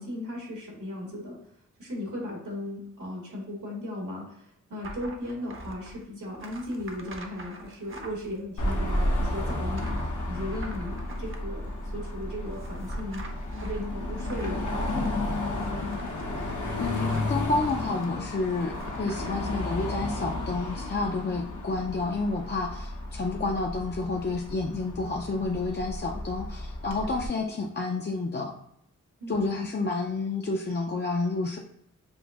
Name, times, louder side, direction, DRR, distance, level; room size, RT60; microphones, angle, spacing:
voice 1, 0.0-1.4 1.8-13.2 13.6-15.2 29.2-29.5, left 1 dB, 80° right, -2 dB, 1.6 m, -36 dB
sound 1, 4.8-19.7, right 2 dB, 40° right, 0.7 m, -46 dB
Car passing by / Traffic noise roadway noise / Engine, 8.6-27.3, left 1 dB, 75° left, 0.9 m, -32 dB
voice 2, 16.8-28.5 29.3-31.6, left 3 dB, 35° left, 0 dB, 0.4 m, -30 dB
6.9 x 2.6 x 2.3 m, 0.75 s
wide cardioid pair, 105°, 31 cm